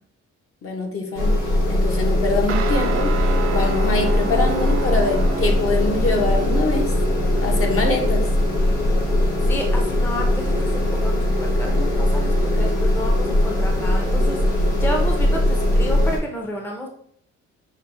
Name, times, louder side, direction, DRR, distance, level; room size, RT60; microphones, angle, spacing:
voice 1, 0.6-1.3 1.7-3.1 3.5-6.9 7.4-8.2, left 3 dB, 45° left, 1 dB, 1.1 m, -24 dB
sound 1, 1.1-16.2, left 1 dB, 80° left, 1.5 m, -20 dB
Guitar, 2.5-11.3, right 3 dB, 45° right, 0.6 m, -32 dB
voice 2, 9.5-16.9, equal, 5° left, 1 dB, 0.7 m, -31 dB
5.7 x 2.4 x 3.4 m, 0.66 s
cardioid pair, 90°, 30 cm